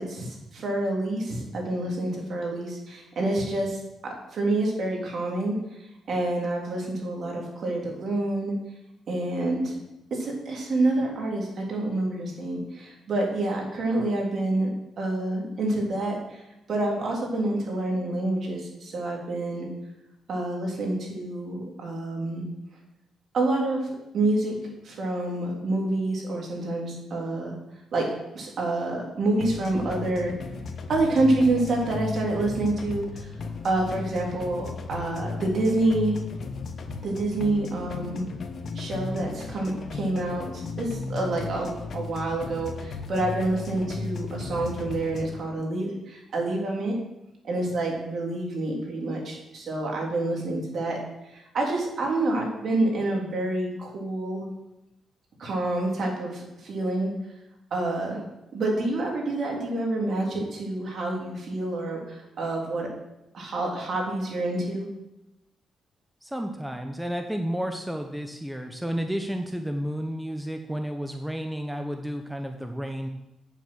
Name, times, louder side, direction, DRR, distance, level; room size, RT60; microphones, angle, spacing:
voice 1, 0.0-8.5 9.1-9.8 10.1-14.7 15.0-16.4 16.7-19.7 20.3-22.4 23.3-23.8 24.1-24.5 24.8-27.6 27.9-28.1 28.3-30.3 30.9-33.3 33.6-36.2 37.0-38.3 38.7-46.9 47.4-51.0 51.3-54.4 55.4-57.1 57.7-58.2 58.5-62.9 63.3-64.9, right 2 dB, 60° right, -1 dB, 3.2 m, -27 dB
sound 1, 29.4-45.4, left 4 dB, 55° left, 1.1 m, -36 dB
voice 2, 66.2-73.1, equal, 5° right, 4 dB, 0.8 m, -31 dB
8.9 x 7.3 x 6.3 m, 0.90 s
cardioid pair, 100°, 0 cm